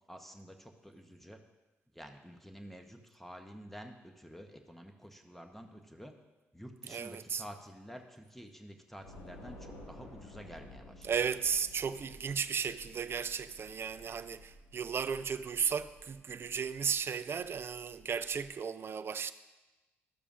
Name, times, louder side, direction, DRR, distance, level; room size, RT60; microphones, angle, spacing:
voice 1, 0.1-1.4 1.9-6.1 6.5-11.1, equal, 5° left, 0.9 m, -50 dB
voice 2, 6.9-7.4 11.0-19.3, right 6 dB, 45° right, 0.4 m, -35 dB
Train / Subway metro underground, 9.0-18.5, left 1 dB, 80° left, 1.5 m, -54 dB
12.5 x 6.7 x 2.5 m
supercardioid pair, 55°, 5 cm